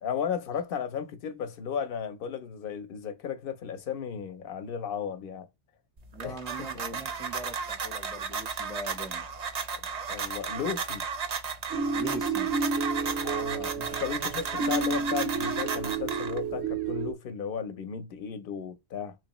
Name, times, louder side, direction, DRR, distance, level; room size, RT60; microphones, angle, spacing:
voice 1, 0.0-5.5 6.2-6.4 6.9-7.0 10.1-11.1 13.2-19.2, left 7 dB, 60° left, 0.8 m, -34 dB
sound 1, 6.0-16.6, right 5 dB, 50° right, 0.5 m, -34 dB
voice 2, 6.1-9.2 11.9-12.5, right 2 dB, 5° left, 0.5 m, -41 dB
sound 2, 11.7-17.1, right 4 dB, 80° right, 0.9 m, -31 dB
3.7 x 3.1 x 2.9 m
omnidirectional pair, 1.1 m